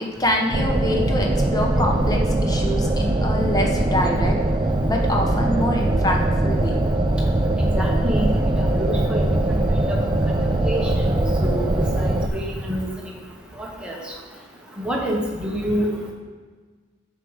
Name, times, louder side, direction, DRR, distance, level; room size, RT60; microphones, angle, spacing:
voice 1, 0.0-4.4 4.9-6.7, left 1 dB, 20° left, 0 dB, 0.9 m, -25 dB
sound 1, 0.5-12.3, right 1 dB, 20° right, 0.4 m, -21 dB
voice 2, 7.7-8.3 8.6-9.6 10.6-12.9 13.6-14.0 14.8-15.9, equal, 5° right, -2 dB, 1.1 m, -27 dB
6.6 x 4.8 x 6.4 m, 1.5 s
head